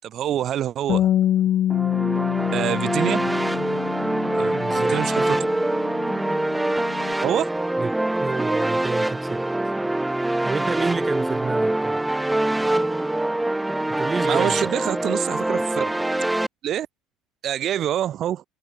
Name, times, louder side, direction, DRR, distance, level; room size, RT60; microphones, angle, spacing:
voice 1, 0.0-1.1 2.5-3.3 4.3-5.2 7.2-7.5 14.2-15.9 16.6-16.9 17.4-18.4, right 11 dB, 50° right, 3.1 m, -26 dB
Bass guitar, 0.9-7.1, left 11 dB, 55° left, 2.3 m, -26 dB
sound 1, 1.7-16.5, right 1 dB, 10° right, 1.7 m, -24 dB
voice 2, 4.5-5.3 7.8-7.9 8.2-9.4 10.4-12.0 13.9-14.7, right 4 dB, 25° right, 4.5 m, -29 dB
hypercardioid pair, 70°, 0 cm